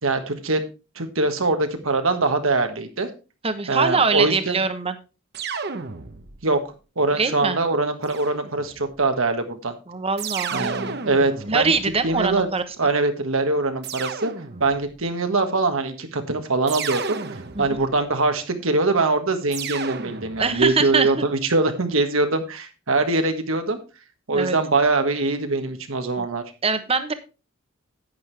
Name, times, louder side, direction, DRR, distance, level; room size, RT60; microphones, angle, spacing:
voice 1, 0.0-0.6 0.9-3.1 3.7-4.6 6.4-6.6 7.0-9.7 10.5-11.7 12.0-12.5 12.8-14.3 14.6-23.8 24.3-26.4, right 3 dB, 75° right, 6 dB, 1.5 m, -23 dB
voice 2, 3.4-4.9 7.2-7.6 9.9-10.9 11.4-12.6 17.5-17.8 20.4-21.3 24.3-24.6 26.2-26.3 26.6-27.1, right 4 dB, 30° right, 10 dB, 1.1 m, -23 dB
sound 1, 5.3-6.5 8.1-8.9 10.2-12.5 13.8-14.9 16.7-18.0 19.5-20.7, right 5 dB, 50° right, 1.0 m, -33 dB
10.5 x 9.4 x 3.4 m, 0.31 s
head